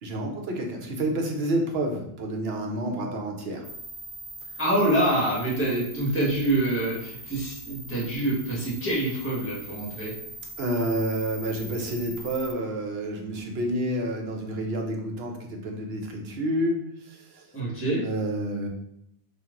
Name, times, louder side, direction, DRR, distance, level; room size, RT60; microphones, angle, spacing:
voice 1, 0.0-3.7 10.6-17.4 18.0-18.7, right 1 dB, 65° right, 2 dB, 1.0 m, -29 dB
sound 1, 3.6-12.5, right 1 dB, 30° right, 0.5 m, -42 dB
voice 2, 4.6-10.1 17.5-18.0, right 1 dB, 10° left, -5 dB, 1.4 m, -26 dB
4.4 x 2.5 x 3.7 m, 0.77 s
omnidirectional pair, 1.1 m